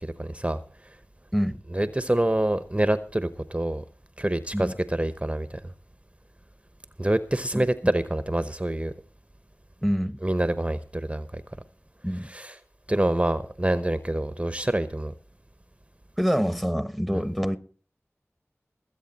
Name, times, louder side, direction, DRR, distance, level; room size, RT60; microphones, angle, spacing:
voice 1, 0.0-0.6 1.7-3.8 4.2-5.6 7.0-8.9 10.2-11.4 12.3-12.5 12.9-15.1 17.1-17.2, right 1 dB, 25° right, 0.9 m, -26 dB
voice 2, 1.3-1.6 4.5-4.7 7.5-7.9 9.8-10.2 12.0-12.3 16.2-17.6, equal, 5° left, 1.2 m, -26 dB
21.0 x 8.3 x 4.1 m
wide cardioid pair, 45°, 5 cm